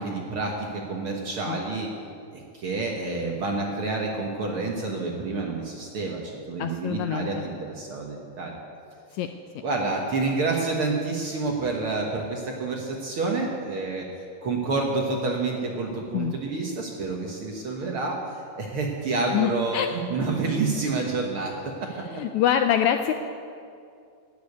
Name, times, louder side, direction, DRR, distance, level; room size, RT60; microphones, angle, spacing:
voice 1, 0.0-1.9 2.3-8.6 9.6-14.1 14.4-18.2 18.6-21.5 21.8-21.9, right 3 dB, 55° right, 0 dB, 1.6 m, -28 dB
voice 2, 6.6-7.5 9.1-9.3 16.1-16.3 19.3-19.9 22.1-23.1, left 10 dB, 80° left, 7 dB, 1.7 m, -25 dB
11.5 x 9.1 x 9.5 m, 2.4 s
omnidirectional pair, 3.8 m